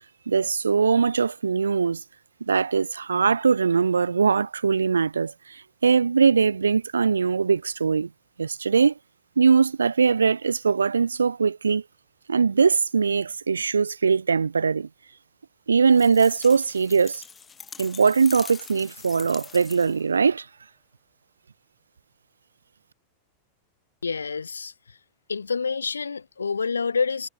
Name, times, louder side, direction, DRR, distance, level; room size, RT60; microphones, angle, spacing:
voice 1, 0.3-2.0 2.5-8.1 8.4-8.9 9.4-11.8 12.3-14.9 15.7-17.2 17.8-20.5, right 5 dB, 75° right, 0.3 m, -21 dB
sound 1, 15.9-20.1, left 6 dB, 20° left, 2.8 m, -43 dB
voice 2, 24.0-25.0 25.3-27.3, left 5 dB, 75° left, 1.0 m, -28 dB
figure-of-eight pair, 90°, 0 cm